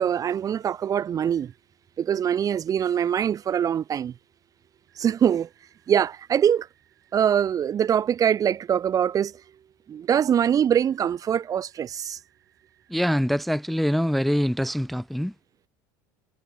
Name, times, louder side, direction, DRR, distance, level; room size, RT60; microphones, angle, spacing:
voice 1, 0.0-1.5 2.0-4.1 5.0-5.5 5.9-6.7 7.1-9.3 9.9-12.2, right 9 dB, 35° right, 0.7 m, -23 dB
sound 1, 1.2-1.6 4.9-7.5 10.8-13.4, right 13 dB, 85° right, 7.1 m, -65 dB
voice 2, 12.9-15.3, equal, ahead, 0.4 m, -24 dB
hypercardioid pair, 90°, 11 cm